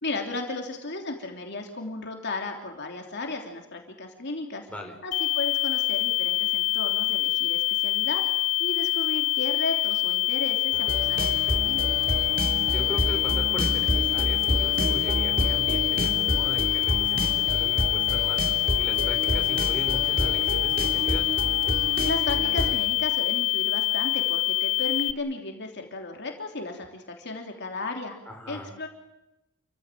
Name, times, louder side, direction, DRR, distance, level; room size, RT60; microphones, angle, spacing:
voice 1, 0.0-4.7 5.0-11.8 22.0-28.2 28.5-28.9, left 2 dB, 55° left, 3 dB, 3.2 m, -34 dB
sound 1, 5.1-25.1, left 18 dB, 80° left, 0.8 m, -25 dB
sound 2, 10.7-22.7, right 1 dB, 45° right, 3.1 m, -29 dB
voice 2, 12.7-21.3 28.2-28.7, left 1 dB, 5° left, 1 dB, 5.0 m, -39 dB
28.5 x 15.5 x 9.2 m, 0.93 s
head